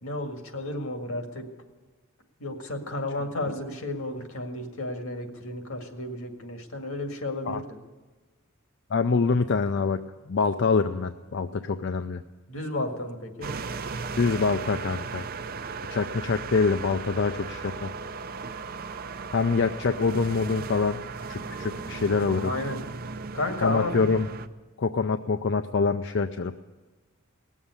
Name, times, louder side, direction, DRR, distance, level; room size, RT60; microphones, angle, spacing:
voice 1, 0.0-1.4 2.4-7.7 12.5-13.5 22.4-22.8 23.3-24.0, left 2 dB, 75° left, 5 dB, 2.0 m, -32 dB
voice 2, 8.9-10.0 10.3-12.2 14.2-15.2 15.9-17.9 19.3-21.0 21.3-22.5 23.6-24.3 24.8-26.5, left 4 dB, 55° left, 8 dB, 0.5 m, -25 dB
sound 1, 13.4-24.5, right 4 dB, 45° right, 0.6 m, -36 dB
18.5 x 7.3 x 9.6 m, 1.3 s
head